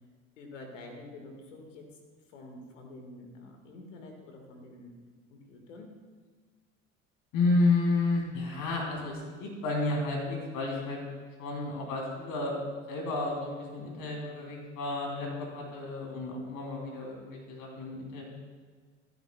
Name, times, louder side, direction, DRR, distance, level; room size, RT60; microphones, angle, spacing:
voice 1, 0.4-1.8 2.3-4.9 5.3-5.9, left 2 dB, 85° left, 2 dB, 1.8 m, -47 dB
voice 2, 7.3-11.0 11.4-12.5 12.9-18.2, left 3 dB, 60° left, -1 dB, 3.3 m, -31 dB
13.5 x 11.5 x 2.3 m, 1.5 s
hypercardioid pair, 70°, 37 cm